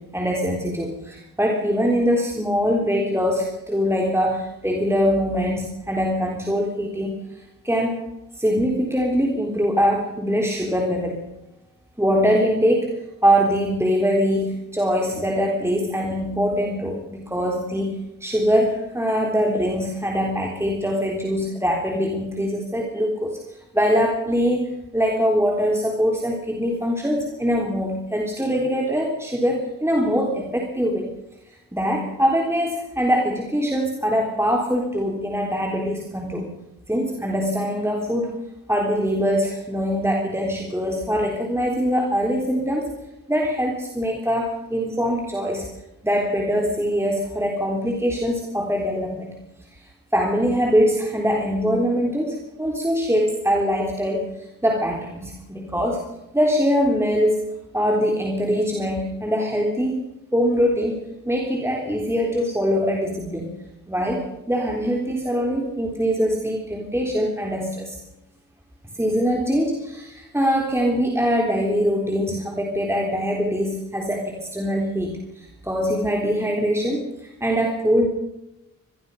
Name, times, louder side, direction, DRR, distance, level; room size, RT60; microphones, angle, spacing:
voice 1, 0.0-7.2 7.6-8.0 8.4-11.2 12.0-12.9 13.2-23.4 23.7-31.1 31.7-36.5 36.9-38.3 38.7-43.0 43.3-45.7 46.0-49.4 50.1-54.3 54.6-56.0 56.3-57.4 57.7-60.0 60.3-61.0 61.3-63.6 63.9-68.0 69.0-77.1 77.4-78.1, equal, 10° right, 0 dB, 3.5 m, -23 dB
24.5 x 20.5 x 5.5 m, 0.91 s
wide cardioid pair, 105°, 33 cm